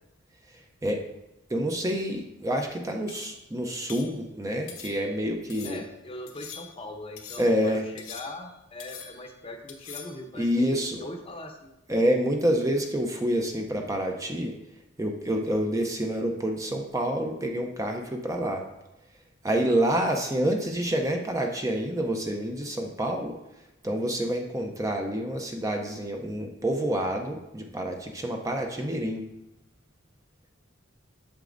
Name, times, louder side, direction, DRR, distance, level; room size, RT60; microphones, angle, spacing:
voice 1, 1.5-5.8 7.4-7.9 10.4-11.0 11.9-14.5 15.0-18.6 19.4-23.4 23.8-29.2, equal, 15° right, 3 dB, 0.6 m, -27 dB
sound 1, 3.1-3.5 3.9-4.2 4.7-5.2 5.5-5.9 6.3-6.9 7.2-7.6 8.0-8.5 8.8-9.3 9.7-10.2, left 7 dB, 90° left, 0.9 m, -44 dB
voice 2, 5.6-11.7, left 1 dB, 30° left, 4 dB, 0.7 m, -41 dB
8.1 x 6.8 x 2.6 m, 0.91 s
head